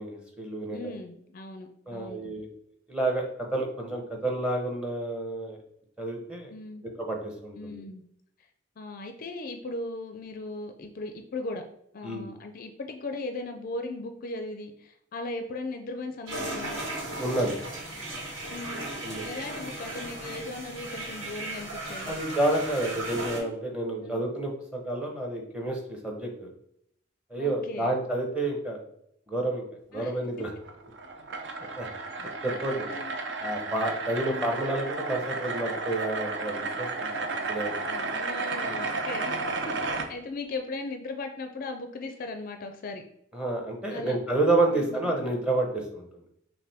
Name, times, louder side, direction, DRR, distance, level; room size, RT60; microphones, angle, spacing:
voice 1, 0.0-0.8 1.9-2.5 2.9-3.3 3.5-5.6 6.0-6.5 6.9-7.8 12.0-12.3 17.2-17.6 19.0-19.2 22.1-26.5 27.3-28.8 29.3-29.6 29.9-30.5 31.6-31.9 32.2-32.9 33.4-37.7 38.7-38.9 43.3-46.1, right 2 dB, 5° right, 0 dB, 0.9 m, -29 dB
voice 2, 0.7-2.2 6.5-6.8 7.6-8.0 8.8-11.6 11.9-16.8 18.5-22.2 24.0-24.2 27.4-28.0 29.9-30.1 32.9-33.2 34.2-34.5 37.9-39.4 39.7-43.0 43.9-44.2 44.7-45.1, left 2 dB, 45° left, 6 dB, 0.4 m, -38 dB
sound 1, 16.3-23.4, right 2 dB, 85° right, 1.6 m, -36 dB
sound 2, 30.6-40.1, right 3 dB, 65° right, 0.6 m, -33 dB
5.8 x 2.6 x 3.5 m, 0.71 s
head